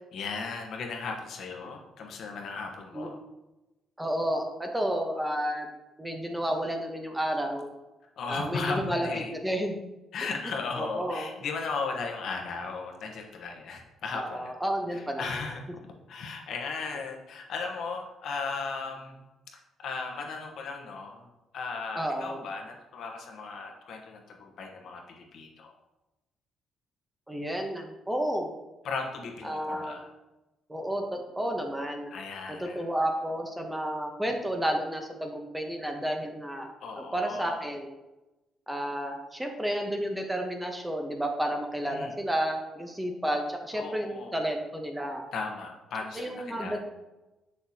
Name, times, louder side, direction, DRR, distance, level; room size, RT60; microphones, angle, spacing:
voice 1, 0.1-3.2 8.2-9.3 10.1-14.5 14.9-15.6 16.1-19.2 19.8-21.3 21.5-25.7 28.8-30.1 32.1-32.8 36.8-37.6 41.9-42.1 43.7-44.4 45.3-46.8, left 4 dB, 65° left, 2 dB, 1.1 m, -36 dB
voice 2, 4.0-5.7 6.0-7.7 8.3-9.8 10.8-11.3 14.1-15.5 21.9-22.4 27.3-28.6 29.4-30.1 30.7-32.1 32.5-36.7 37.0-37.9 38.7-45.2 46.1-46.8, equal, 10° right, 3 dB, 0.9 m, -31 dB
6.7 x 6.4 x 2.8 m, 1.0 s
cardioid pair, 105°, 0 cm